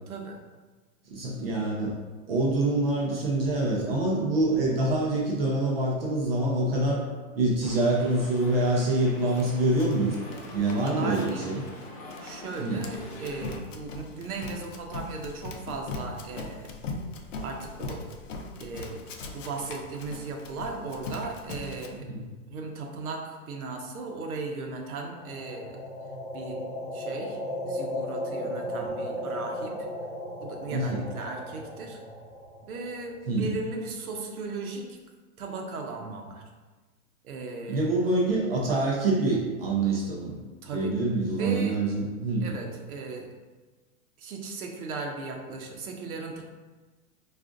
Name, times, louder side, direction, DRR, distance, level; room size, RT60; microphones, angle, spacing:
voice 1, 0.1-0.4 10.5-11.4 12.2-16.7 17.4-18.0 18.6-19.0 19.3-22.1 22.5-25.8 26.3-26.6 26.9-27.4 27.7-29.7 30.4-32.0 32.6-35.0 35.4-36.4 37.2-38.2 40.6-40.9 41.4-41.8 42.4-43.3 44.2-46.4, right 3 dB, 75° right, 2 dB, 0.8 m, -37 dB
voice 2, 1.1-2.0 2.3-7.0 7.4-10.2 10.5-11.6 12.6-12.8 22.1-22.2 28.7-28.9 30.7-31.0 33.3-33.5 37.7-40.4 40.7-42.5, right 2 dB, 45° right, -3 dB, 0.5 m, -26 dB
sound 1, 7.6-13.6, left 1 dB, 40° left, 0.9 m, -43 dB
Run, 9.3-21.9, left 3 dB, 60° left, 0.5 m, -40 dB
sound 2, 25.1-33.2, equal, 15° left, 1.0 m, -35 dB
4.7 x 2.4 x 2.4 m, 1.3 s
hypercardioid pair, 170°, 43 cm